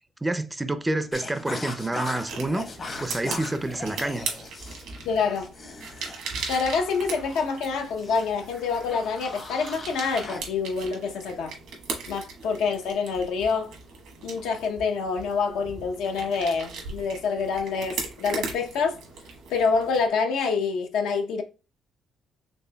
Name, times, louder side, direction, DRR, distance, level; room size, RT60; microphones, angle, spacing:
voice 1, 0.2-2.7 3.0-4.3, right 2 dB, 15° right, 0.4 m, -28 dB
sound 1, 1.1-10.4, left 3 dB, 45° left, 0.9 m, -40 dB
sound 2, 2.3-20.1, right 4 dB, 90° right, 1.2 m, -39 dB
voice 2, 5.0-5.5 6.5-11.6 12.1-13.7 14.2-19.0 19.5-21.4, left 5 dB, 85° left, 0.7 m, -26 dB
4.3 x 3.1 x 2.2 m
cardioid pair, 90°, 0 cm